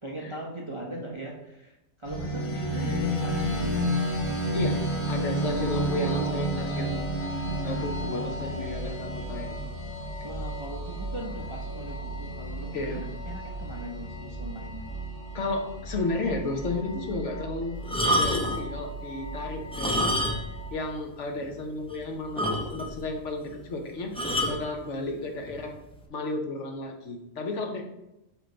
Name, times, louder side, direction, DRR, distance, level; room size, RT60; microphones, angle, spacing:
voice 1, 0.0-4.0 5.7-6.3 10.2-14.8, right 1 dB, 25° right, -1 dB, 0.7 m, -39 dB
sound 1, 2.0-20.7, right 1 dB, 90° left, 3.0 m, -32 dB
voice 2, 4.5-7.0 7.6-9.5 12.7-13.0 15.3-17.8 18.1-20.2 20.7-25.8 26.1-27.8, left 2 dB, 60° left, 3 dB, 1.1 m, -33 dB
sound 2, 17.8-18.7 19.6-20.6 20.9-21.0 21.5-21.6 21.9-22.0 22.4-23.0 24.2-24.6 25.5-25.7, equal, 10° left, 0.4 m, -27 dB
7.9 x 3.2 x 3.9 m, 0.93 s
omnidirectional pair, 1.5 m